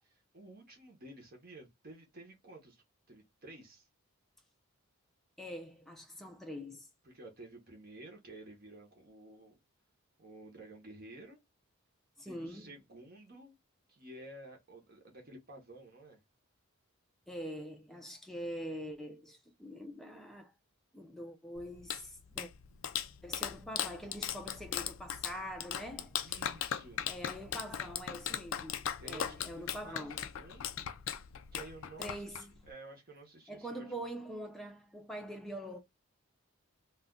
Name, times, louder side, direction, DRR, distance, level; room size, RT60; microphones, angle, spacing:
voice 1, 0.0-3.9 7.0-9.6 10.2-11.4 12.2-13.6 13.9-16.2 26.2-27.0 29.0-30.7 31.5-34.0, right 2 dB, 40° right, 0.8 m, -52 dB
voice 2, 5.4-6.9 12.2-12.7 17.3-20.5 20.9-22.5 23.2-26.4 27.1-30.2 32.0-32.5 33.5-35.8, equal, ahead, 0.5 m, -44 dB
Clapping, 21.5-32.7, left 9 dB, 65° left, 0.4 m, -39 dB
2.4 x 2.2 x 3.5 m
head